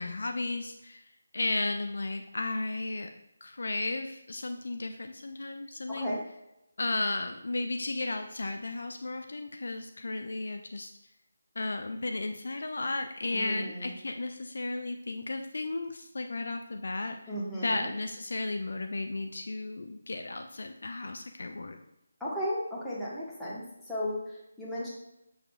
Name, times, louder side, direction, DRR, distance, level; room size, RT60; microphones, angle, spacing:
voice 1, 0.0-3.1 3.4-6.2 6.8-10.9 11.6-17.2 17.6-21.8, left 2 dB, 55° left, 6 dB, 0.4 m, -34 dB
voice 2, 5.9-6.2 13.3-13.9 17.3-17.9 22.2-24.9, equal, ahead, -10 dB, 1.3 m, -35 dB
6.5 x 6.3 x 2.4 m, 0.86 s
figure-of-eight pair, 155°, 0 cm